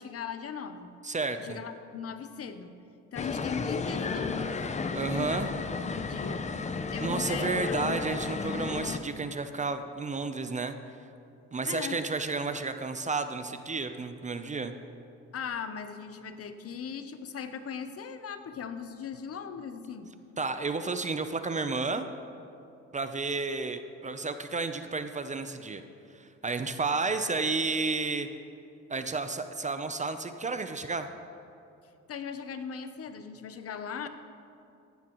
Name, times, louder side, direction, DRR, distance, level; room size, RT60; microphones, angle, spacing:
voice 1, 0.0-0.9 1.4-2.7 3.1-4.6 5.0-6.5 6.9-7.8 11.6-12.0 15.3-20.1 32.1-34.1, left 6 dB, 50° left, 9 dB, 0.8 m, -39 dB
voice 2, 1.0-1.6 4.9-5.5 7.0-10.7 11.5-14.7 20.4-22.1 22.9-25.8 26.2-28.3 28.9-31.1, right 3 dB, 25° right, 9 dB, 0.6 m, -31 dB
sound 1, 3.2-9.0, left 4 dB, 25° left, 0.6 m, -33 dB
15.0 x 11.0 x 3.1 m, 2.6 s
cardioid pair, 90°, 30 cm